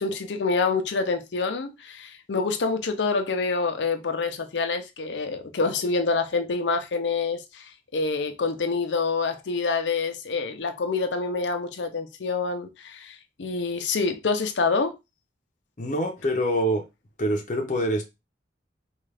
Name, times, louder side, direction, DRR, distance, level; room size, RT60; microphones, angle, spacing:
voice 1, 0.0-15.0, left 4 dB, 85° left, 0.6 m, -27 dB
voice 2, 15.8-16.8 17.2-18.1, equal, 40° left, 0.7 m, -25 dB
3.5 x 2.4 x 3.3 m
head